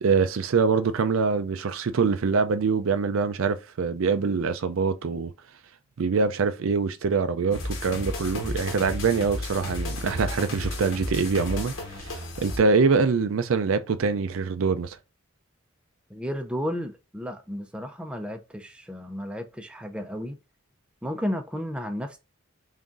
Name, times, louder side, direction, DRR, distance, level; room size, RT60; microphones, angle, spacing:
voice 1, 0.0-5.3 6.0-15.0, right 5 dB, 70° right, 0.4 m, -24 dB
sound 1, 7.5-12.6, left 2 dB, 70° left, 1.2 m, -33 dB
voice 2, 16.1-20.4 21.0-22.2, equal, 5° right, 0.5 m, -33 dB
3.8 x 3.5 x 2.5 m
head